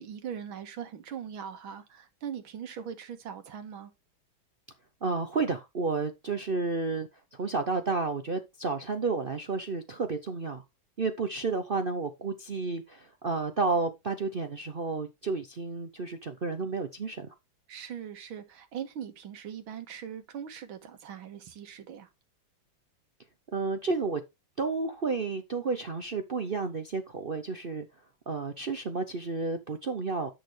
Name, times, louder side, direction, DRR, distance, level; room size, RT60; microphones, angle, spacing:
voice 1, 0.0-3.9 17.7-22.1, right 8 dB, 90° right, 2.2 m, -40 dB
voice 2, 5.0-10.6 11.0-17.3 23.5-24.2 24.6-27.9 28.3-30.3, right 4 dB, 65° right, 0.5 m, -31 dB
9.9 x 6.5 x 3.2 m
omnidirectional pair, 2.2 m